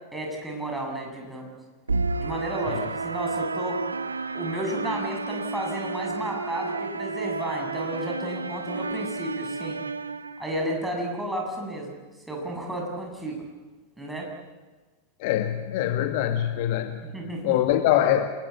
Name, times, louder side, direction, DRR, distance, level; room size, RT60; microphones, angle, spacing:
voice 1, 0.1-1.5 2.2-3.8 4.3-9.8 10.4-11.9 12.3-13.4 14.0-14.3 17.0-17.5, right 1 dB, 5° right, 0 dB, 7.2 m, -32 dB
sound 1, 1.9-10.9, right 3 dB, 75° right, 0.9 m, -31 dB
voice 2, 15.2-17.1 17.4-18.3, left 12 dB, 50° left, 7 dB, 1.9 m, -23 dB
28.0 x 21.0 x 8.4 m, 1.3 s
figure-of-eight pair, 90°, 0 cm